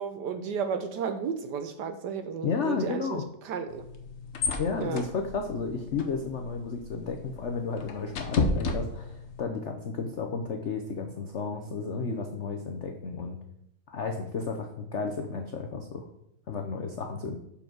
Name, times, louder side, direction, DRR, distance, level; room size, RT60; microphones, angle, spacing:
voice 1, 0.0-3.8 4.8-5.0, right 6 dB, 70° right, 9 dB, 1.1 m, -33 dB
voice 2, 2.4-3.2 4.6-13.4 13.9-16.1 16.5-17.4, left 4 dB, 85° left, 4 dB, 0.6 m, -33 dB
sound 1, 3.7-9.4, left 3 dB, 55° left, 0.8 m, -33 dB
7.1 x 5.3 x 6.0 m, 0.79 s
omnidirectional pair, 2.3 m